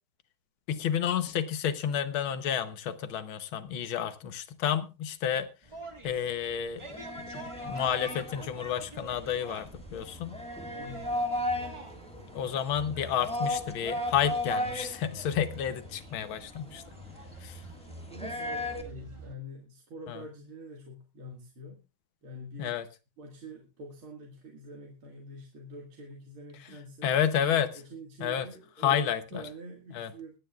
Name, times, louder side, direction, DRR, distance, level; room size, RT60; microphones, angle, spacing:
voice 1, 0.7-5.5 6.0-6.9 7.2-10.4 12.3-16.8 17.4-17.6 20.1-20.2 22.6-22.9 27.0-27.7 28.2-28.5 28.8-29.4 29.9-30.1, left 9 dB, 75° left, 1.7 m, -30 dB
sound 1, 5.6-19.3, right 1 dB, 15° right, 1.2 m, -47 dB
sound 2, 6.8-18.8, left 1 dB, 5° left, 1.4 m, -36 dB
voice 2, 10.7-11.1 18.1-21.8 22.2-22.8 23.2-27.1 27.7-30.3, equal, 80° right, 2.8 m, -45 dB
23.0 x 9.5 x 2.4 m
omnidirectional pair, 2.3 m